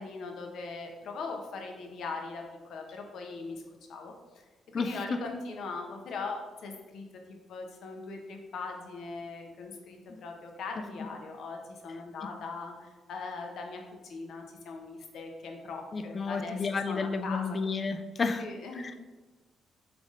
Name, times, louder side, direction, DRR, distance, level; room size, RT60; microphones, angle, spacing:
voice 1, 0.0-3.6 3.9-4.1 4.7-17.4 18.4-18.9, left 4 dB, 70° left, 3 dB, 0.7 m, -40 dB
voice 2, 4.7-5.2 10.1-10.2 15.9-18.5 18.8-18.9, left 4 dB, 40° left, 8 dB, 0.3 m, -31 dB
4.0 x 3.4 x 3.6 m, 1.2 s
cardioid pair, 90°, 0 cm